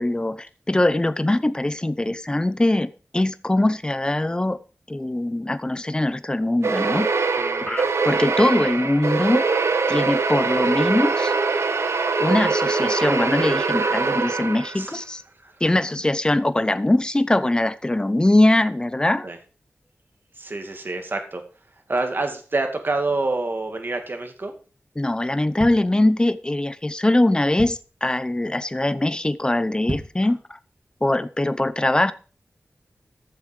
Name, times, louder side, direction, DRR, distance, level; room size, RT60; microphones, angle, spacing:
voice 1, 0.0-4.6 4.9-7.1 7.6-9.4 9.9-11.3 12.2-15.2 15.6-19.3 25.0-30.4 31.0-32.1, left 1 dB, 20° left, 14 dB, 0.8 m, -22 dB
sound 1, 6.6-14.9, right 4 dB, 85° right, 1.0 m, -23 dB
voice 2, 20.3-21.4 21.9-24.5 30.2-30.3, right 2 dB, 50° right, 5 dB, 2.3 m, -27 dB
sound 2, 25.6-26.5 27.0-27.1 27.3-28.1 28.5-28.8 29.1-29.2 29.7-30.3 30.7-30.8, right 1 dB, 35° right, 3.1 m, -34 dB
14.5 x 7.2 x 4.9 m, 0.37 s
wide cardioid pair, 80°, 4 cm